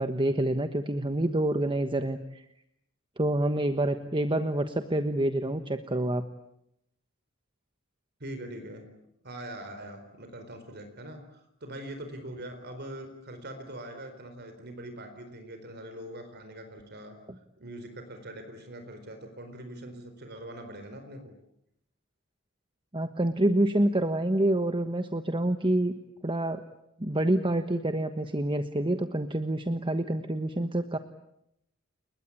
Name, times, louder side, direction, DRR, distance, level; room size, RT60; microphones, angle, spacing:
voice 1, 0.0-2.4 3.2-6.2 22.9-25.9 26.2-26.6 27.0-31.0, right 1 dB, 25° right, 9 dB, 1.3 m, -27 dB
voice 2, 8.2-8.9 9.2-17.2 17.6-21.3, right 1 dB, 50° right, 7 dB, 4.3 m, -42 dB
30.0 x 22.0 x 8.6 m, 0.79 s
head